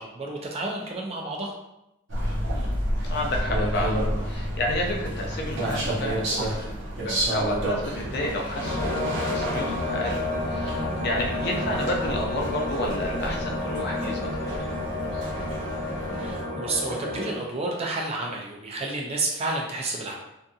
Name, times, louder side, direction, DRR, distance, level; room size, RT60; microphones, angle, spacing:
voice 1, 0.0-1.5 16.2-20.1, right 2 dB, 30° right, 0 dB, 0.3 m, -30 dB
sound 1, 2.1-16.4, right 1 dB, 60° right, 0.7 m, -30 dB
voice 2, 2.4-6.7 7.0-14.8, left 1 dB, 50° left, 0 dB, 0.4 m, -31 dB
sound 2, 8.6-17.4, left 2 dB, 65° left, 0.9 m, -30 dB
2.6 x 2.5 x 2.3 m, 0.89 s
head